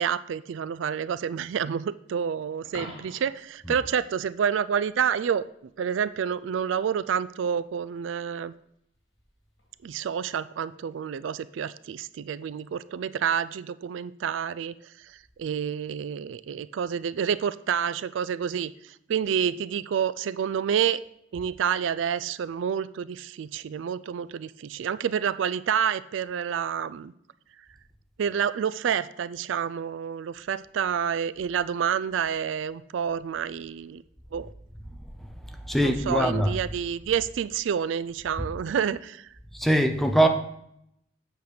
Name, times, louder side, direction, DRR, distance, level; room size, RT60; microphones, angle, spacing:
voice 1, 0.0-5.4 5.8-8.5 9.8-21.0 21.3-27.1 28.2-34.0 34.3-34.5 35.8-39.3, right 8 dB, 85° right, 17 dB, 0.3 m, -28 dB
Coin (dropping), 2.6-3.5 9.6-9.8, left 1 dB, 70° left, 2.6 m, -42 dB
voice 2, 35.7-36.6 38.4-38.5 39.5-40.3, right 1 dB, ahead, 6 dB, 0.7 m, -23 dB
8.1 x 6.5 x 5.1 m, 0.74 s
head